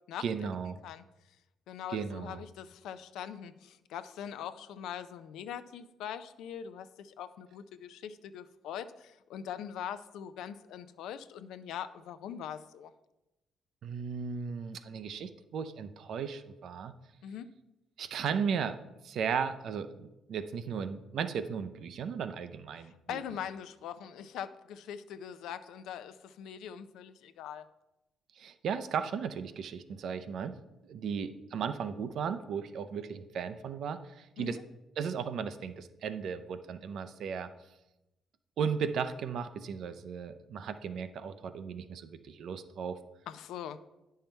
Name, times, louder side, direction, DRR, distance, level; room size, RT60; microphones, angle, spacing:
voice 1, 0.2-0.8 1.9-2.4 13.8-16.9 18.0-18.8 19.0-23.2 28.4-30.5 30.8-34.6 35.0-37.5 38.6-43.0, right 6 dB, 70° right, 11 dB, 0.6 m, -36 dB
voice 2, 1.7-12.9 17.2-17.5 22.8-27.6 34.4-34.6 43.3-43.8, left 9 dB, 85° left, 11 dB, 0.5 m, -42 dB
9.2 x 5.6 x 4.5 m, 0.96 s
cardioid pair, 90°, 0 cm